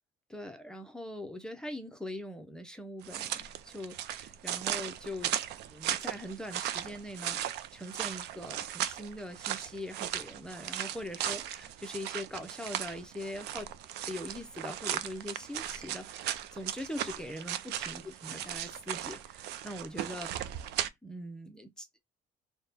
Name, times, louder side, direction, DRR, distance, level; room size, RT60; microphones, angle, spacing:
voice 1, 0.3-5.3 5.6-13.7 14.0-20.3 21.0-22.0, left 1 dB, 5° left, 0.6 m, -42 dB
sound 1, 3.0-20.9, right 11 dB, 80° right, 0.5 m, -37 dB
4.3 x 2.2 x 3.4 m
cardioid pair, 110°, 17 cm